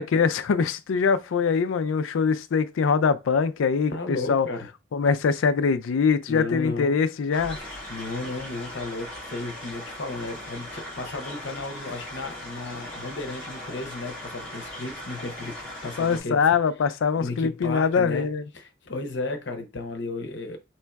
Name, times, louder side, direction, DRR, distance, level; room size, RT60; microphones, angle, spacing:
voice 1, 0.0-4.5 4.9-7.6 16.0-18.4, left 5 dB, 85° left, 0.4 m, -23 dB
voice 2, 3.9-4.7 6.3-6.9 7.9-16.5 17.2-18.3 18.5-20.6, left 2 dB, 60° left, 0.8 m, -34 dB
sound 1, 7.3-16.2, left 1 dB, 10° left, 1.8 m, -39 dB
4.4 x 3.0 x 2.3 m
head